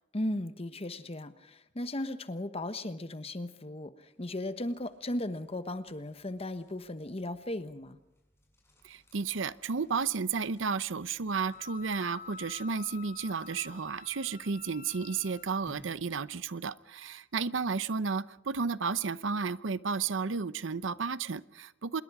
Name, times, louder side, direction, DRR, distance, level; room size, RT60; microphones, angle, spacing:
voice 1, 0.1-3.9 4.2-8.0, left 1 dB, 30° left, 11 dB, 1.1 m, -36 dB
sound 1, 4.1-16.4, equal, 15° left, 7.3 m, -63 dB
voice 2, 8.8-22.0, right 5 dB, 90° right, 16 dB, 0.7 m, -32 dB
Wind instrument woodwind instrument, 11.3-15.6, left 5 dB, 50° left, 0.8 m, -49 dB
26.5 x 21.5 x 4.9 m, 0.85 s
head